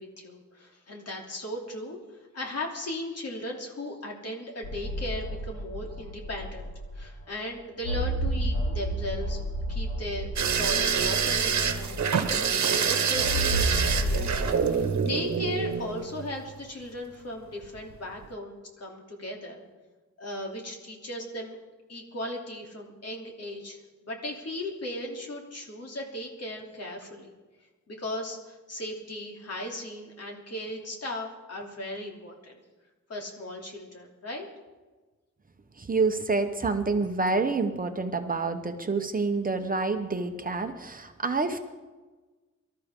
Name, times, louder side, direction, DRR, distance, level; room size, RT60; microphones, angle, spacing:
voice 1, 0.0-9.4 9.7-10.3 10.6-19.6 20.2-21.6 21.9-27.3 27.9-32.6 33.1-34.5, left 1 dB, 55° left, 0 dB, 3.0 m, -37 dB
sound 1, 4.6-7.2 7.8-12.5 13.2-14.4, right 1 dB, 85° left, 4.0 m, -31 dB
sound 2, 10.4-16.4 17.6-18.0 18.2-18.3, right 6 dB, 70° right, 1.2 m, -26 dB
voice 2, 35.8-41.6, right 3 dB, 30° right, 6 dB, 0.9 m, -28 dB
24.0 x 13.0 x 3.7 m, 1.3 s
wide cardioid pair, 155°, 29 cm